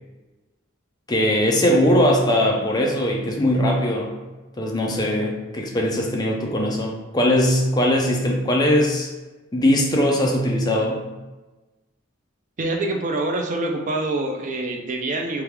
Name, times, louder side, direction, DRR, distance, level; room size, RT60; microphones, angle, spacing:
voice 1, 1.1-4.1 4.6-9.1 9.5-11.0, left 1 dB, 20° left, 0 dB, 0.5 m, -20 dB
voice 2, 12.6-15.4, right 2 dB, 40° right, 3 dB, 0.4 m, -25 dB
3.4 x 2.4 x 4.5 m, 1.1 s
head